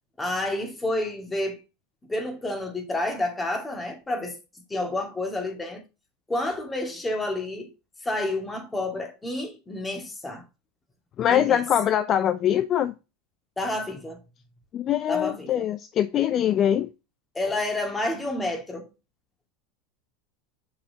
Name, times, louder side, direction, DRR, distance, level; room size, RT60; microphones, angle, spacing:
voice 1, 0.2-1.6 2.1-4.4 4.7-5.8 6.3-7.7 8.0-10.4 11.3-11.6 13.6-14.2 15.1-15.7 17.3-18.9, left 1 dB, 15° left, 2.2 m, -29 dB
voice 2, 11.2-12.9 14.7-16.9, left 10 dB, 40° left, 0.4 m, -23 dB
6.7 x 5.4 x 2.9 m
hypercardioid pair, 90°, 0 cm